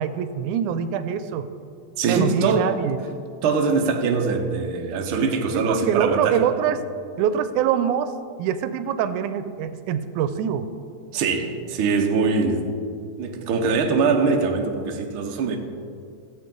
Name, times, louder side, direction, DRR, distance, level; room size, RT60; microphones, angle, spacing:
voice 1, 0.0-1.5 2.1-3.0 5.5-6.9 7.2-10.7, right 8 dB, 90° right, 11 dB, 2.0 m, -24 dB
voice 2, 2.0-2.8 3.4-6.4 11.1-12.7 13.2-15.6, right 4 dB, 65° right, 3 dB, 1.3 m, -22 dB
15.5 x 7.9 x 3.8 m, 2.4 s
omnidirectional pair, 3.4 m